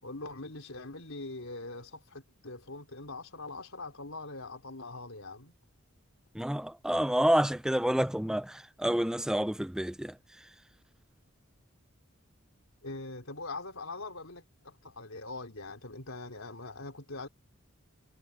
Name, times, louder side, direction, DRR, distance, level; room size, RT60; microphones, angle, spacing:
voice 1, 0.0-5.5 12.8-17.3, left 2 dB, 70° left, 4.1 m, -42 dB
voice 2, 6.4-10.1, equal, 5° right, 0.3 m, -28 dB
head